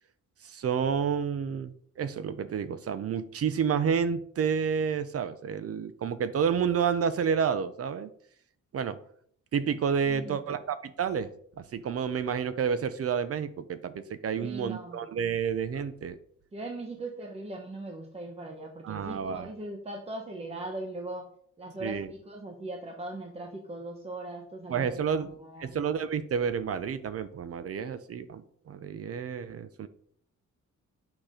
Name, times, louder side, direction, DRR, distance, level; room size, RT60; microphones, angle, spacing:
voice 1, 0.4-8.1 8.7-9.0 9.5-11.3 11.7-16.2 18.8-19.5 21.8-22.1 24.7-25.3 25.6-29.9, right 7 dB, 50° right, 13 dB, 0.6 m, -30 dB
voice 2, 10.0-10.4 14.4-15.0 16.5-21.3 21.6-25.7, right 2 dB, 20° right, 2 dB, 1.0 m, -40 dB
8.9 x 5.9 x 5.1 m, 0.63 s
wide cardioid pair, 155°, 31 cm